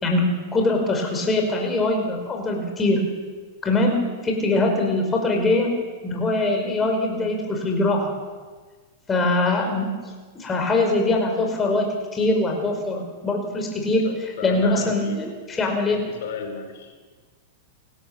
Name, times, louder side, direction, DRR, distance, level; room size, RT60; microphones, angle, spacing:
voice 1, 0.0-3.0 3.6-4.0 4.2-5.7 6.0-8.2 9.1-9.9 10.4-16.0, left 2 dB, 20° left, 2 dB, 5.2 m, -22 dB
voice 2, 14.0-15.2 15.9-16.9, left 5 dB, 55° left, 5 dB, 4.9 m, -34 dB
28.0 x 13.0 x 7.2 m, 1.4 s
figure-of-eight pair, 95°, 0 cm